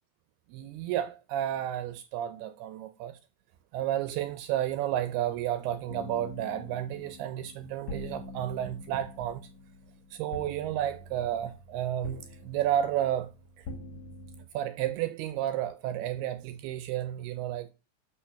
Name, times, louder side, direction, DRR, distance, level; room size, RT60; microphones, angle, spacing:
voice 1, 0.5-3.2 3.7-9.5 10.1-13.3 13.6-13.7 14.5-17.7, right 11 dB, 80° right, 2.3 m, -32 dB
sound 1, 5.9-14.5, left 2 dB, 70° left, 1.6 m, -45 dB
12.0 x 4.7 x 5.7 m
omnidirectional pair, 5.0 m